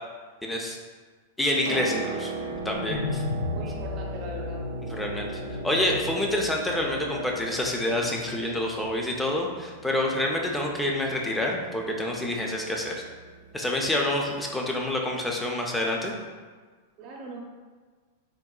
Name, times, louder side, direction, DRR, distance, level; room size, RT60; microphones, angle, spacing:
voice 1, 0.4-0.8 1.4-2.3 2.6-3.2 4.9-13.0 13.5-16.1, left 1 dB, 5° left, 0 dB, 0.4 m, -27 dB
Piano, 1.4-15.1 16.2-16.3, right 4 dB, 80° right, 0.6 m, -40 dB
sound 1, 2.2-8.5, left 3 dB, 70° left, 0.6 m, -35 dB
voice 2, 3.5-4.6 13.8-14.0 17.0-17.4, right 2 dB, 40° right, -1 dB, 0.6 m, -40 dB
3.7 x 2.1 x 2.3 m, 1.5 s
supercardioid pair, 145°, 0 cm